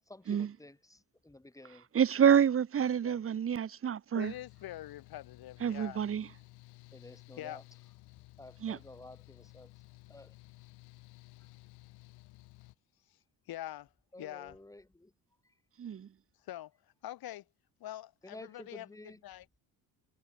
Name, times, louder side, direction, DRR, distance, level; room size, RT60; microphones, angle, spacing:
voice 1, 0.1-1.8 3.0-3.2 6.9-7.6 8.4-9.7 10.1-10.3 14.1-15.1 18.2-19.2, left 2 dB, 10° left, 4.6 m, -52 dB
voice 2, 1.9-4.3 5.6-6.3 8.6-8.8 15.8-16.1, right 8 dB, 35° right, 1.3 m, -28 dB
voice 3, 4.1-6.0 7.4-7.6 11.4-11.5 13.1-13.2 13.5-13.9 14.2-14.6 16.4-16.7 17.0-17.4 17.8-19.5, left 14 dB, 70° left, 7.9 m, -44 dB
Mechanical fan, 4.2-12.7, left 21 dB, 90° left, 5.1 m, -56 dB
cardioid pair, 105°, 38 cm